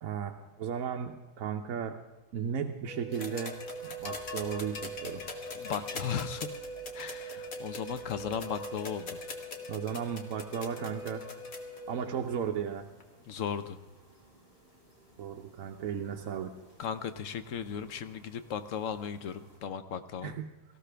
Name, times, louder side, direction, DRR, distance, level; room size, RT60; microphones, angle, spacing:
voice 1, 0.0-2.0 2.3-3.6 3.8-5.2 9.7-11.2 11.9-12.9 15.2-16.5 20.2-20.5, right 7 dB, 60° right, 4 dB, 0.9 m, -35 dB
Wind instrument woodwind instrument, 2.9-12.2, right 1 dB, 90° left, 3.8 m, -44 dB
sound 1, 3.1-11.8 13.0-13.1, left 4 dB, 45° left, 1.8 m, -43 dB
sound 2, 3.5-19.6, equal, 15° left, 4.3 m, -60 dB
voice 2, 5.5-6.5 6.9-9.2 13.3-13.8 16.8-20.3, left 8 dB, 70° left, 11 dB, 0.7 m, -36 dB
18.5 x 15.0 x 3.4 m, 1.2 s
omnidirectional pair, 2.2 m